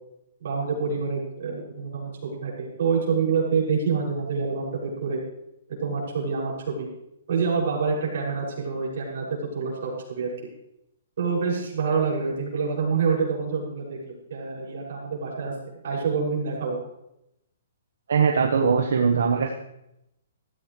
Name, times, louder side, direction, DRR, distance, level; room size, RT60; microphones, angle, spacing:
voice 1, 0.4-4.7 5.0-5.2 5.8-6.9 7.3-9.2 9.5-10.3 11.2-15.5 15.8-16.8, right 5 dB, 50° right, -5 dB, 6.5 m, -27 dB
voice 2, 18.1-19.6, right 5 dB, 70° right, 2 dB, 1.5 m, -21 dB
15.5 x 14.5 x 3.3 m, 0.83 s
hypercardioid pair, 175°, 0 cm